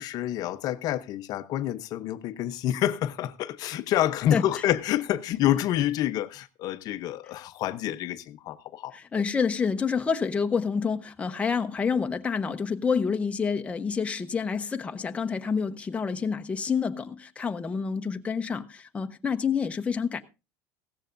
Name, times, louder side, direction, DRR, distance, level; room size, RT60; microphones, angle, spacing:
voice 1, 0.0-9.0, left 12 dB, 50° left, 0.8 m, -28 dB
voice 2, 8.9-20.2, left 6 dB, 15° left, 0.8 m, -28 dB
16.0 x 14.0 x 2.6 m
supercardioid pair, 130°, 8 cm